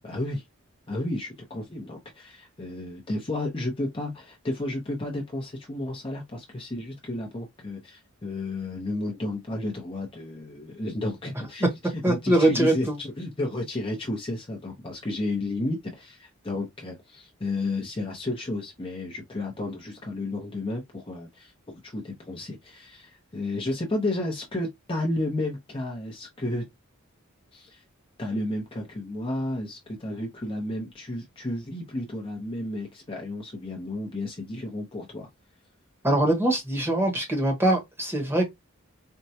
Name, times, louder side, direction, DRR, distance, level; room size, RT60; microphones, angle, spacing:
voice 1, 0.1-0.4 0.9-11.7 12.1-21.5 21.8-26.6 27.5-27.8 28.2-35.3, left 2 dB, 25° left, 0.7 m, -32 dB
voice 2, 12.0-13.0 36.0-38.4, right 1 dB, 10° right, 1.0 m, -23 dB
4.4 x 2.2 x 2.7 m
head